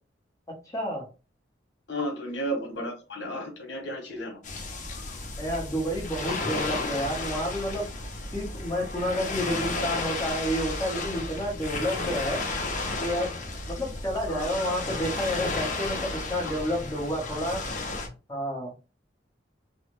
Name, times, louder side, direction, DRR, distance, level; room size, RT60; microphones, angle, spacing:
voice 1, 0.7-1.0 5.4-7.9 8.3-12.4 13.0-13.4 13.7-17.6 18.3-18.7, equal, 20° left, -2 dB, 1.0 m, -30 dB
voice 2, 1.9-4.4 9.7-10.1 14.3-14.5 16.4-16.6 17.3-17.4, equal, 75° left, 2 dB, 1.1 m, -34 dB
sound 1, 4.4-18.1, left 3 dB, 40° left, 0.6 m, -33 dB
3.2 x 2.0 x 3.0 m, 0.31 s
head